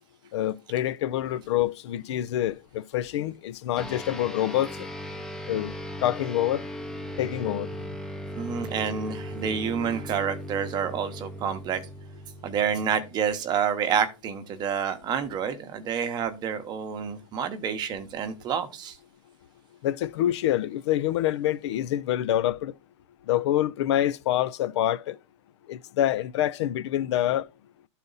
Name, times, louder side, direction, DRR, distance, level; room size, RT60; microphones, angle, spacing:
voice 1, 0.3-4.9 5.5-5.7 6.0-6.6 7.2-7.7 19.8-22.7 23.3-25.2 25.7-27.4, left 12 dB, 60° left, 0.5 m, -26 dB
sound 1, 3.8-13.5, equal, 5° left, 0.7 m, -38 dB
voice 2, 8.4-11.8 12.4-19.0, right 7 dB, 25° right, 0.9 m, -28 dB
11.5 x 4.1 x 3.9 m
supercardioid pair, 150°, 16 cm